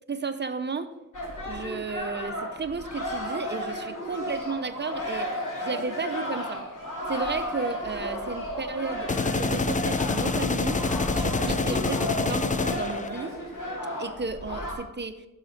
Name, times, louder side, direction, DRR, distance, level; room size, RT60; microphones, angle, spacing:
voice 1, 0.1-0.9 1.4-5.3 5.6-6.7 7.1-10.8 11.1-13.4 14.0-15.2, right 4 dB, 35° right, 0.7 m, -33 dB
sound 1, 1.1-14.7, equal, 70° left, 2.8 m, -33 dB
sound 2, 9.1-13.1, left 4 dB, 25° left, 0.3 m, -27 dB
9.3 x 6.5 x 5.4 m
wide cardioid pair, 130°, 33 cm